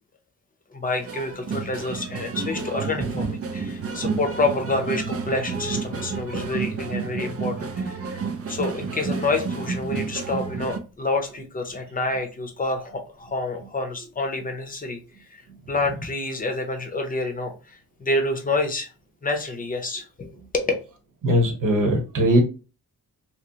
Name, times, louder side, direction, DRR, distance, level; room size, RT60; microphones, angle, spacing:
voice 1, 0.7-8.2 8.5-15.0 15.3-15.4 15.7-18.9 19.2-20.7, left 2 dB, 25° left, 5 dB, 0.7 m, -28 dB
sound 1, 1.0-10.8, right 5 dB, 45° right, 0.5 m, -30 dB
voice 2, 21.2-22.4, equal, 70° right, 3 dB, 1.1 m, -20 dB
3.1 x 2.9 x 2.7 m, 0.32 s
wide cardioid pair, 155°, 32 cm